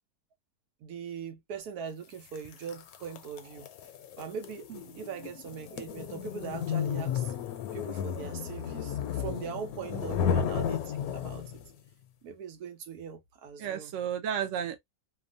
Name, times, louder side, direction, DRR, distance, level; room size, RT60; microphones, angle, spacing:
voice 1, 0.8-3.7 4.2-4.7 5.0-7.3 7.7-11.6 12.2-13.9, right 7 dB, 80° right, 1.2 m, -41 dB
sound 1, 2.3-11.7, left 8 dB, 75° left, 1.0 m, -33 dB
voice 2, 9.9-10.2 13.6-14.8, right 9 dB, 65° right, 0.9 m, -34 dB
2.9 x 2.1 x 2.5 m
omnidirectional pair, 1.6 m